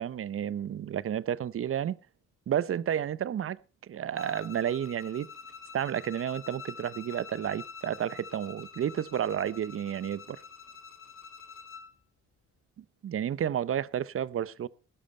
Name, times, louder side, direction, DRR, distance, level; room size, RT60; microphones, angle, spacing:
voice 1, 0.0-2.0 2.5-3.6 3.9-5.3 5.7-10.4 12.8-14.7, right 9 dB, 45° right, 0.7 m, -31 dB
Bowed string instrument, 4.1-11.9, left 6 dB, 45° left, 1.9 m, -47 dB
16.0 x 12.0 x 4.3 m
cardioid pair, 90°, 30 cm